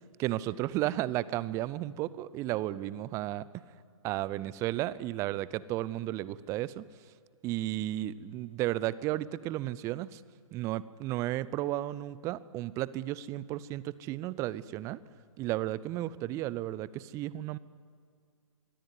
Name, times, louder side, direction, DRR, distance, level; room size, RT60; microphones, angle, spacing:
voice 1, 0.2-3.4 4.0-6.8 7.4-10.2 10.5-15.0 15.4-17.6, right 15 dB, 15° right, 19 dB, 0.6 m, -33 dB
24.5 x 23.5 x 9.5 m, 2.1 s
figure-of-eight pair, 125°, 18 cm